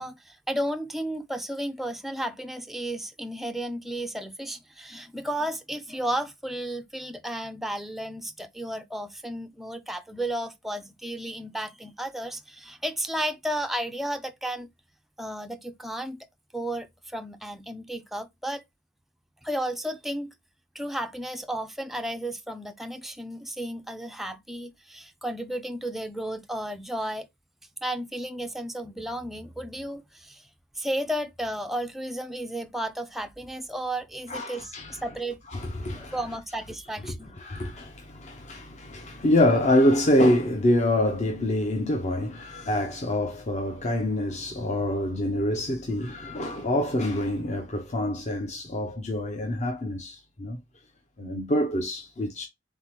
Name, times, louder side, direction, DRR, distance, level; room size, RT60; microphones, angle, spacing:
voice 1, 0.0-14.7 15.2-16.3 16.5-18.6 19.4-20.3 20.7-27.3 27.8-30.5 30.7-35.4 35.9-37.3, right 1 dB, ahead, 0.4 m, -33 dB
voice 2, 34.3-35.0 35.5-36.2 37.4-50.6 51.2-52.5, left 1 dB, 40° left, 0.7 m, -26 dB
4.0 x 3.6 x 3.0 m
head